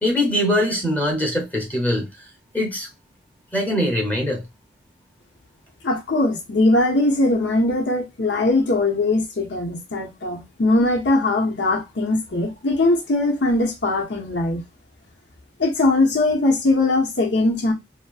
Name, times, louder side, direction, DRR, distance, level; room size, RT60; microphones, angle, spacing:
voice 1, 0.0-2.3 2.5-2.9 3.5-4.5, left 1 dB, 10° left, 0.9 m, -22 dB
voice 2, 5.8-14.6 15.6-17.7, left 2 dB, 75° left, 0.9 m, -20 dB
2.9 x 2.8 x 2.3 m
head